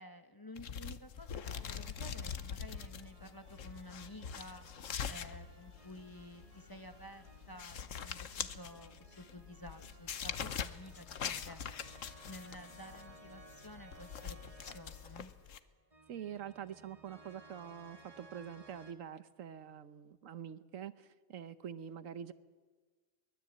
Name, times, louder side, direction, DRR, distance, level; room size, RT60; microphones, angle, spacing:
voice 1, 0.0-4.7 5.1-11.6 12.2-15.3, left 1 dB, 15° left, 7 dB, 1.4 m, -52 dB
sound 1, 0.6-15.6, left 7 dB, 75° left, 1.3 m, -44 dB
sound 2, 1.4-18.9, right 2 dB, 25° right, 2.0 m, -60 dB
voice 2, 16.1-22.3, right 9 dB, 75° right, 14 dB, 1.3 m, -46 dB
23.0 x 20.0 x 8.5 m, 1.4 s
omnidirectional pair, 1.4 m